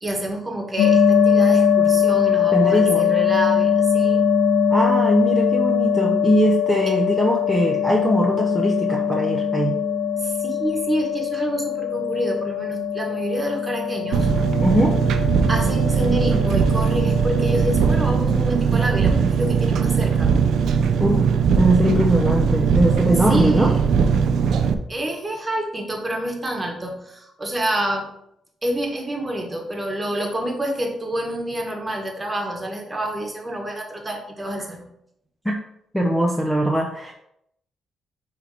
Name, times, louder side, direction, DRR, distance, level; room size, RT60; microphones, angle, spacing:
voice 1, 0.0-4.2 10.2-14.3 15.5-20.3 23.3-23.9 24.9-28.1 28.6-34.8, right 1 dB, 20° right, 1 dB, 1.6 m, -27 dB
sound 1, 0.8-18.0, left 7 dB, 75° left, 0.9 m, -21 dB
voice 2, 2.5-3.1 4.7-9.7 14.6-15.0 21.0-23.7 35.4-35.5 35.9-37.1, right 1 dB, 5° left, 0 dB, 0.8 m, -21 dB
Engine, 14.1-24.7, right 6 dB, 75° right, 0.5 m, -19 dB
5.6 x 3.5 x 5.0 m, 0.76 s
cardioid pair, 80°, 0 cm